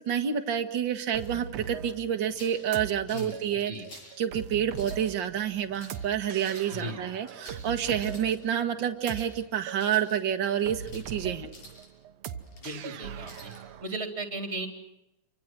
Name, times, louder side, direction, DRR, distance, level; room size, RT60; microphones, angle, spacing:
voice 1, 0.0-3.7 4.2-11.5, right 9 dB, 45° right, 6 dB, 2.1 m, -29 dB
sound 1, 1.1-13.8, right 7 dB, 65° right, 2.1 m, -41 dB
sound 2, 2.2-2.6 3.1-3.4 3.7-4.2 4.7-5.1 5.6-6.0 6.4-6.8 7.3-7.7 7.9-8.4 8.8-9.3 9.7-10.2 10.6-11.1 11.5-11.9 12.3-12.8 13.2-13.6, left 1 dB, 70° left, 8.4 m, -49 dB
voice 2, 3.1-3.9 6.7-7.0 12.6-13.5 13.8-14.7, right 2 dB, 20° right, 5 dB, 3.6 m, -36 dB
29.5 x 25.0 x 6.2 m, 0.88 s
omnidirectional pair, 3.4 m